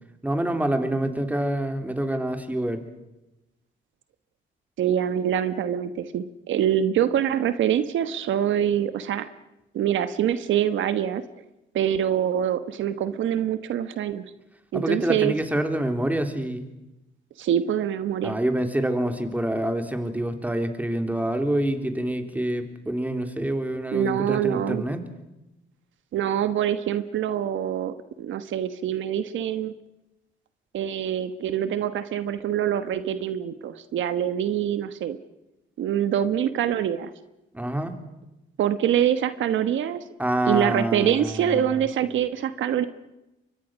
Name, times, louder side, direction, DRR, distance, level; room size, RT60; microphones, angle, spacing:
voice 1, 0.2-2.8 14.7-16.7 18.2-25.0 37.5-37.9 40.2-41.9, right 1 dB, 10° right, 6 dB, 3.5 m, -26 dB
voice 2, 4.8-9.3 9.7-11.2 11.7-14.2 14.7-15.3 17.4-18.4 23.9-24.9 26.1-29.7 30.7-35.2 35.8-37.1 38.6-40.0 40.5-42.8, right 10 dB, 75° right, 11 dB, 1.3 m, -25 dB
28.5 x 23.5 x 6.4 m, 0.95 s
cardioid pair, 90°, 20 cm